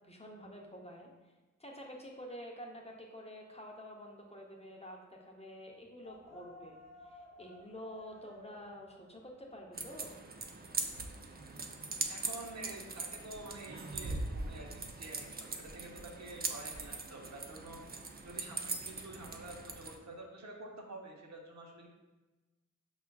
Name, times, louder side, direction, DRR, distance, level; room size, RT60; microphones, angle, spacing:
voice 1, 0.0-1.3 1.6-6.8 7.0-10.2, equal, 20° left, -1 dB, 0.6 m, -49 dB
sound 1, 6.0-11.9, left 1 dB, 55° left, 0.8 m, -57 dB
sound 2, 9.7-20.0, right 3 dB, 30° right, 0.4 m, -41 dB
voice 2, 12.1-21.9, right 2 dB, 60° right, -1 dB, 0.7 m, -48 dB
5.6 x 2.4 x 2.2 m, 1.2 s
cardioid pair, 45°, 31 cm